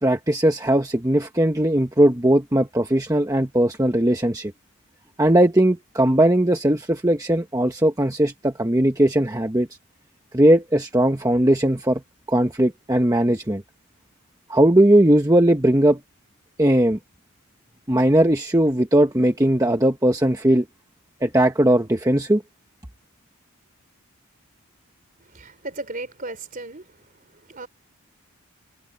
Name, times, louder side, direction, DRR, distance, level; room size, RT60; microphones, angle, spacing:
voice 1, 0.0-4.5 5.2-9.7 10.3-12.0 12.3-13.6 14.5-16.0 16.6-17.0 17.9-20.6 21.2-22.4, right 1 dB, 15° right, 1.1 m, -19 dB
voice 2, 25.2-27.0 27.3-27.7, right 2 dB, 40° right, 3.9 m, -36 dB
head